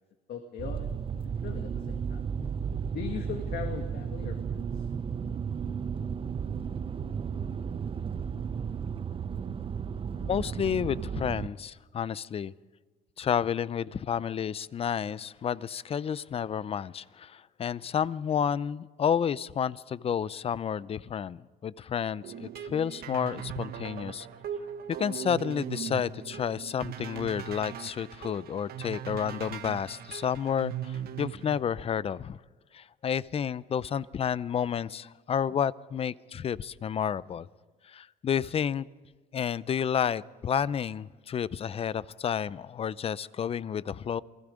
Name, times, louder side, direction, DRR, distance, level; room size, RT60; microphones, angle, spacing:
voice 1, 0.3-0.9 1.2-2.3 2.9-4.6, left 7 dB, 65° left, 4 dB, 1.9 m, -39 dB
sound 1, 0.6-11.5, right 7 dB, 30° right, 0.8 m, -34 dB
voice 2, 10.2-12.5 13.2-24.3 25.0-32.4 32.7-37.5 37.9-38.8 39.3-44.2, left 8 dB, 35° left, 19 dB, 0.5 m, -30 dB
sound 2, 22.2-31.6, right 9 dB, 65° right, 1.3 m, -39 dB
28.0 x 20.0 x 5.1 m, 1.3 s
cardioid pair, 110°, 17 cm